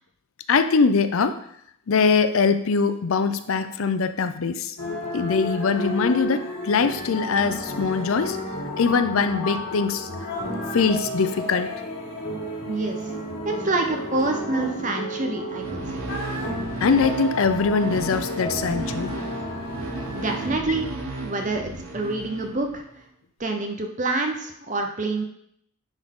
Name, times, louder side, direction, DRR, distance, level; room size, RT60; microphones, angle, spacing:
voice 1, 0.5-1.4 1.9-4.8 5.1-8.4 8.8-10.1 10.7-11.7 16.8-19.2, left 5 dB, 75° left, 10 dB, 0.5 m, -22 dB
sound 1, 4.8-20.5, left 1 dB, 90° left, 1.9 m, -32 dB
voice 2, 12.7-13.0 13.4-15.8 20.1-20.9 21.2-22.8 23.4-25.2, right 2 dB, 35° right, 4 dB, 0.7 m, -27 dB
sound 2, 15.5-23.0, right 2 dB, 70° right, 1.3 m, -34 dB
10.0 x 3.9 x 3.7 m, 0.71 s
head